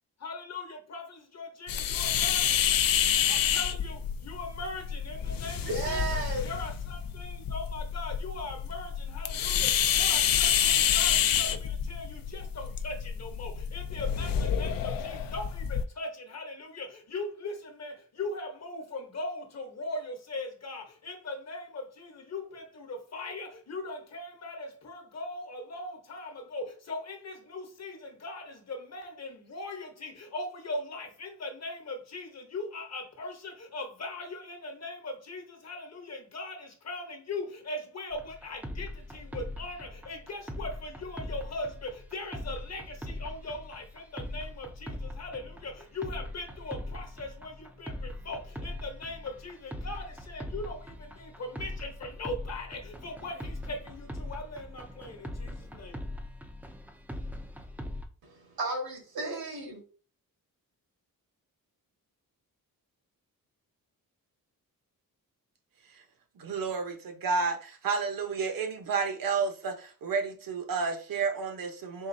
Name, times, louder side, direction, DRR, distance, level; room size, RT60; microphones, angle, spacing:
voice 1, 0.2-2.7 3.3-56.0, left 2 dB, 45° left, 0.9 m, -40 dB
sound 1, 1.7-15.8, left 9 dB, 70° left, 0.5 m, -28 dB
voice 2, 5.6-6.5 58.2-59.8, right 2 dB, 85° right, 1.7 m, -34 dB
sound 2, 38.1-58.0, left 1 dB, 5° right, 0.4 m, -41 dB
voice 3, 66.4-72.1, right 5 dB, 70° right, 0.9 m, -31 dB
3.9 x 3.7 x 2.6 m
wide cardioid pair, 155°, 36 cm